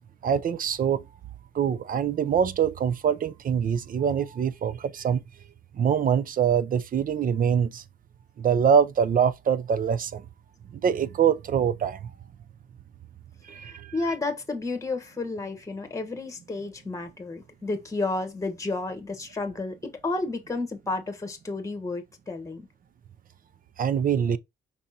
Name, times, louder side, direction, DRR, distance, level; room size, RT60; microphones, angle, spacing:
voice 1, 0.2-1.0 1.5-5.2 5.7-7.8 8.4-10.2 10.8-12.1 13.5-13.9 23.8-24.4, right 7 dB, 45° right, 0.5 m, -24 dB
voice 2, 13.5-22.7, left 3 dB, 15° left, 1.1 m, -32 dB
5.4 x 3.6 x 2.8 m
cardioid pair, 90°, 20 cm